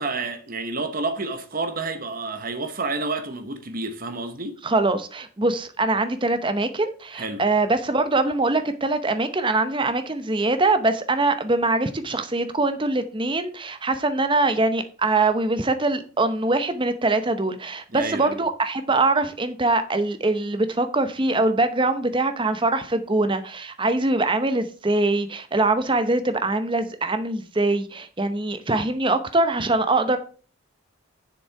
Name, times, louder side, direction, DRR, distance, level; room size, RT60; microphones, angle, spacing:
voice 1, 0.0-4.6 7.1-7.4 17.9-18.4, right 3 dB, 40° right, 1.1 m, -29 dB
voice 2, 4.6-30.2, right 2 dB, 25° right, 0.7 m, -23 dB
7.0 x 6.9 x 4.7 m
head